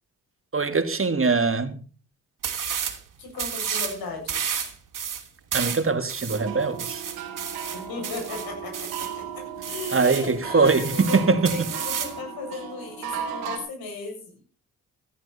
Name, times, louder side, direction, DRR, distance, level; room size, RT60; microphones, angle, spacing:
voice 1, 0.5-1.8 5.5-7.0 9.9-11.7, right 4 dB, 35° right, 2.9 m, -22 dB
sound 1, 2.4-3.0 3.3-4.0 4.3-9.1 9.6-10.3 10.6-12.2, right 7 dB, 60° right, 3.1 m, -31 dB
voice 2, 3.2-4.7 7.7-14.4, left 3 dB, 75° left, 7.5 m, -36 dB
sound 2, 6.3-13.6, right 7 dB, 85° right, 3.4 m, -36 dB
15.0 x 14.0 x 4.2 m
hypercardioid pair, 45°, 36 cm